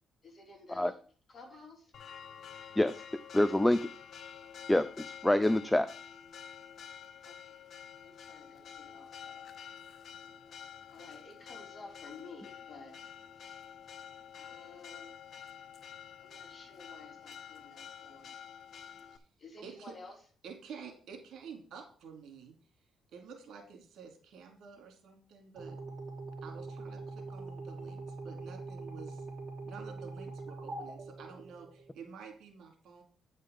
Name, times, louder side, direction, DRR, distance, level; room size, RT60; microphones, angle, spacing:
voice 1, 0.2-1.0 1.3-1.9 7.2-7.6 8.0-9.5 10.9-12.9 14.3-15.2 16.2-18.3 19.4-20.2, left 3 dB, 35° left, 0 dB, 3.7 m, -52 dB
Church bell, 1.9-19.2, left 8 dB, 60° left, 0.7 m, -49 dB
voice 2, 2.8-3.9 4.7-5.9, left 1 dB, 10° left, 15 dB, 0.4 m, -27 dB
voice 3, 19.6-19.9 20.4-22.5 23.1-25.8 26.4-29.3 29.6-33.0, right 6 dB, 70° right, 2 dB, 2.6 m, -50 dB
sound 1, 25.6-32.0, right 3 dB, 30° right, 3.5 m, -43 dB
9.3 x 5.5 x 5.2 m, 0.44 s
cardioid pair, 90°, 0 cm